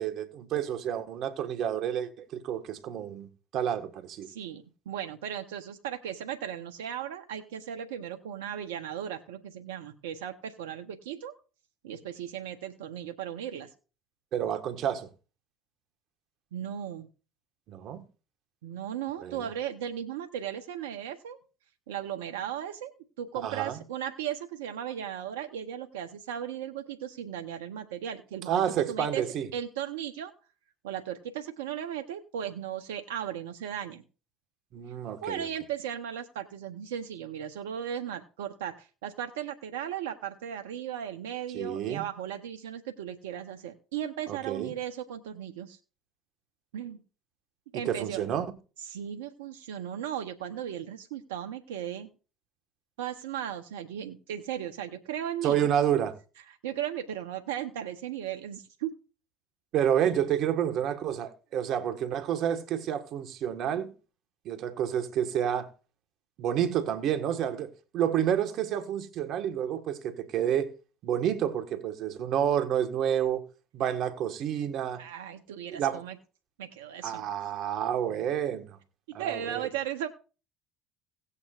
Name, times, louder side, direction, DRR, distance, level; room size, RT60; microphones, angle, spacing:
voice 1, 0.0-4.3 14.3-15.1 17.7-18.0 19.2-19.4 23.3-23.8 28.5-29.5 34.7-35.5 41.5-42.0 44.3-44.7 47.7-48.5 55.4-56.2 59.7-63.9 64.4-65.7 66.4-70.7 71.0-73.4 73.7-75.0 75.7-76.0 77.0-78.8 79.1-79.7, right 9 dB, 60° right, 1.5 m, -29 dB
voice 2, 4.2-11.3 11.8-13.7 16.5-17.1 18.6-21.4 21.9-22.9 23.2-29.2 29.5-30.3 30.8-34.0 35.2-45.8 46.7-47.0 47.7-48.2 48.8-52.1 53.0-55.7 56.6-58.9 75.0-76.2 76.6-77.2 79.2-80.1, right 10 dB, 85° right, 0.8 m, -36 dB
17.0 x 8.4 x 2.5 m
hypercardioid pair, 75°, 0 cm